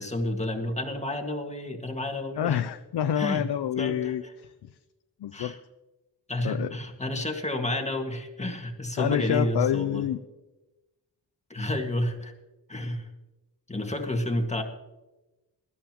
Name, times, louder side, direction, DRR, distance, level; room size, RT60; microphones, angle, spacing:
voice 1, 0.0-2.6 3.1-3.4 3.8-4.3 5.3-5.6 6.3-10.1 11.5-12.3 12.7-13.1 13.7-14.6, left 1 dB, 15° left, 3 dB, 1.8 m, -30 dB
voice 2, 2.4-4.7 5.2-5.6 6.4-6.7 9.0-10.2, left 10 dB, 85° left, 10 dB, 0.6 m, -28 dB
20.5 x 12.5 x 3.0 m, 1.1 s
wide cardioid pair, 95°, 39 cm